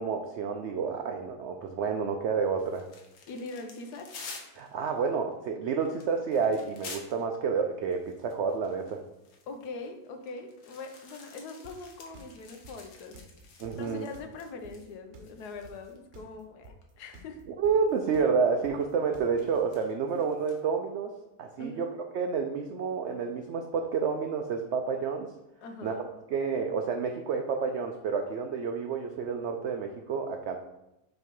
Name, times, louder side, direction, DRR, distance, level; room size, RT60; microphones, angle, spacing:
voice 1, 0.0-2.9 4.6-9.0 13.6-14.1 17.6-21.1 21.4-21.9 22.1-25.3 25.8-25.9 26.3-30.6, right 5 dB, 75° right, 4 dB, 0.6 m, -29 dB
sound 1, 2.6-7.3 7.9-15.0 15.2-16.0 16.8-16.9 17.9-18.2 18.8-20.6, left 4 dB, 65° left, 1.3 m, -50 dB
voice 2, 3.2-4.1 9.5-13.2 13.8-17.4 21.6-21.9 25.6-26.0, left 3 dB, 85° left, 6 dB, 1.3 m, -42 dB
sound 2, 11.6-19.6, right 2 dB, 50° right, 1.0 m, -51 dB
5.7 x 3.1 x 5.2 m, 0.91 s
omnidirectional pair, 1.7 m